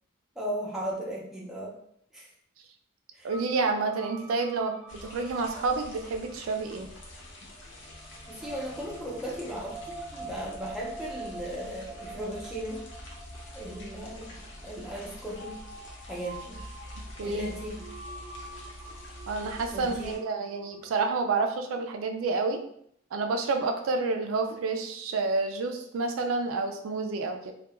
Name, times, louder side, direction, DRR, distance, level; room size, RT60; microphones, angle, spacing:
voice 1, 0.4-1.8 2.1-2.3 3.1-3.3 8.3-12.8 13.5-14.4 14.6-15.6 16.1-16.6 17.2-17.8 19.7-20.2, equal, ahead, -5 dB, 0.5 m, -36 dB
voice 2, 3.2-6.9 17.2-17.5 19.3-22.6 23.1-27.5, right 3 dB, 80° right, 4 dB, 0.3 m, -29 dB
sound 1, 3.3-21.4, right 3 dB, 20° right, 1.0 m, -47 dB
sound 2, 4.9-20.2, left 1 dB, 65° left, 0.6 m, -46 dB
2.2 x 2.2 x 2.9 m, 0.69 s
head